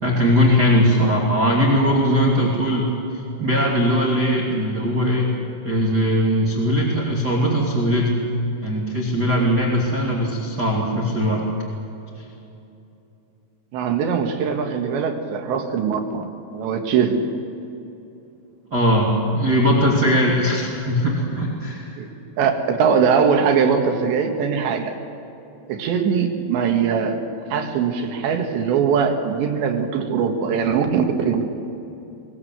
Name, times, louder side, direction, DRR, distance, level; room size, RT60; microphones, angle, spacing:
voice 1, 0.0-5.3 5.6-8.1 8.6-11.5 12.2-12.3 18.7-22.0, equal, 25° right, -3 dB, 2.3 m, -20 dB
voice 2, 13.7-16.3 16.5-17.4 22.0-22.1 22.4-25.0 25.7-27.2 27.5-31.4, right 6 dB, 65° right, 4 dB, 3.7 m, -21 dB
23.5 x 20.5 x 8.2 m, 2.9 s
omnidirectional pair, 5.8 m